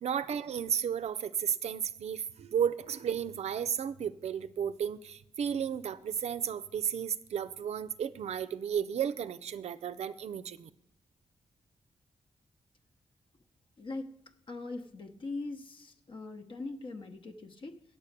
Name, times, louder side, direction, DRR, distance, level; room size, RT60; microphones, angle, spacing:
voice 1, 0.0-10.7, right 8 dB, 70° right, 13 dB, 0.4 m, -33 dB
voice 2, 13.8-14.1 14.5-17.8, left 3 dB, 45° left, 5 dB, 0.9 m, -41 dB
8.3 x 8.2 x 6.6 m, 0.79 s
wide cardioid pair, 115°, 12 cm